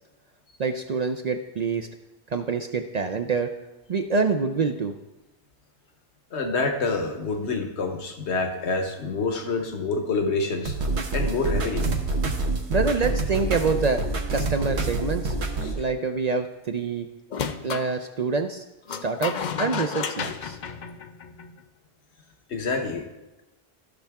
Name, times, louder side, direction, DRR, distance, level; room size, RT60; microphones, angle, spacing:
voice 1, 0.6-1.9 2.3-3.5 3.9-4.9 12.7-14.0 14.3-15.3 15.8-17.1 17.6-20.6, right 4 dB, 50° right, 6 dB, 0.5 m, -26 dB
voice 2, 6.3-10.8 11.1-11.9 15.6-15.7 22.5-23.0, left 3 dB, 75° left, 5 dB, 1.4 m, -27 dB
sound 1, 10.7-15.7, right 2 dB, 75° right, 1.2 m, -27 dB
sound 2, 17.3-17.9 18.9-21.6, left 6 dB, 55° left, 0.5 m, -32 dB
14.5 x 5.6 x 3.5 m, 1.0 s
omnidirectional pair, 1.1 m